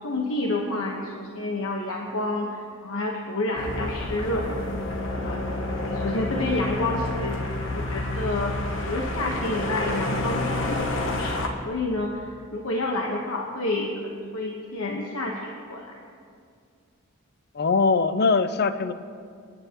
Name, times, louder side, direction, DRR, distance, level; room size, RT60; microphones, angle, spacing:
voice 1, 0.0-4.6 5.1-5.5 5.8-7.4 7.7-8.5 8.8-15.9, left 2 dB, 80° left, -1 dB, 1.2 m, -29 dB
sound 1, 3.5-11.5, left 2 dB, 65° left, 1.3 m, -29 dB
voice 2, 17.5-18.9, left 4 dB, 50° left, 12 dB, 0.5 m, -21 dB
28.0 x 10.0 x 3.0 m, 2.3 s
head